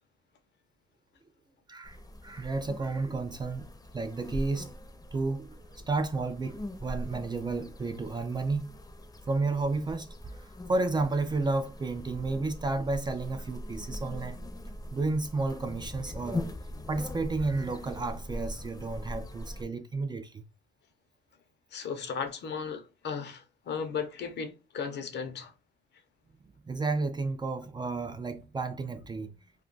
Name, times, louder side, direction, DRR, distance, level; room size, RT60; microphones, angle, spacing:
sound 1, 1.8-19.6, left 1 dB, 20° left, 0.6 m, -41 dB
voice 1, 2.2-4.7 5.1-8.8 9.3-14.4 14.9-16.5 16.9-20.4 26.6-29.3, right 3 dB, 20° right, 0.4 m, -32 dB
voice 2, 21.7-25.5, left 6 dB, 60° left, 0.7 m, -36 dB
2.3 x 2.2 x 3.7 m
cardioid pair, 90°, 20 cm